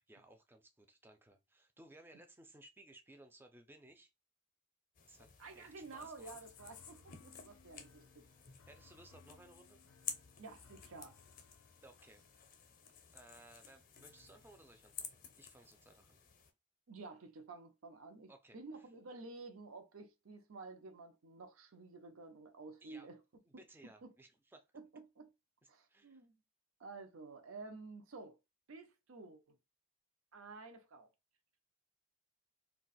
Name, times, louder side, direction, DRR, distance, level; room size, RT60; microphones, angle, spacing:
voice 1, 0.0-4.1 5.1-5.3 5.5-6.4 7.8-7.9 8.7-9.8 11.8-12.2 13.1-15.1 15.4-16.2 18.3-18.9 22.8-23.1 23.5-24.7 25.6-26.2, right 1 dB, 10° right, 0.4 m, -60 dB
sound 1, 5.0-16.5, left 7 dB, 40° left, 0.6 m, -52 dB
voice 2, 5.4-8.3 10.4-11.2 16.9-23.2 24.0-24.1 24.7-25.3 25.7-26.4 26.8-28.4 28.7-29.6 30.3-31.1, right 3 dB, 75° right, 0.6 m, -52 dB
sound 2, 6.3-15.5, left 5 dB, 90° left, 0.4 m, -66 dB
2.4 x 2.3 x 3.9 m
head